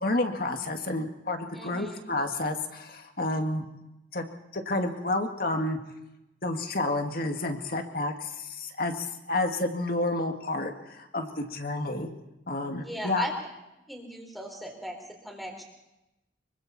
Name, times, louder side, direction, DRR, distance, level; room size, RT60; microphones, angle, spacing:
voice 1, 0.0-3.7 4.1-4.2 4.5-5.8 6.4-12.1 12.5-13.3, left 2 dB, 50° left, 5 dB, 2.1 m, -30 dB
voice 2, 1.5-2.1 12.8-13.3 13.9-15.6, equal, ahead, 2 dB, 4.0 m, -38 dB
25.5 x 23.5 x 4.3 m, 0.94 s
head